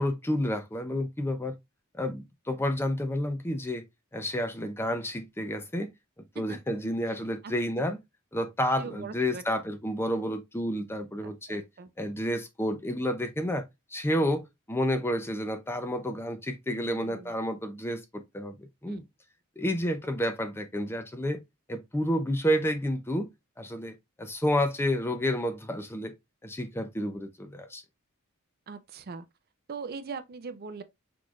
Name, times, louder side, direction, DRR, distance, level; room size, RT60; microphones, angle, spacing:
voice 1, 0.0-1.5 1.9-3.8 4.1-5.9 6.4-8.0 8.3-11.6 12.0-13.6 13.9-19.0 19.6-21.4 21.7-23.3 23.6-26.1 26.4-27.8, equal, 10° left, 0.5 m, -30 dB
voice 2, 8.8-9.4 11.2-11.9 16.7-17.3 18.9-19.0 28.7-29.3 29.7-30.8, right 5 dB, 45° right, 0.5 m, -41 dB
6.1 x 3.2 x 2.4 m
head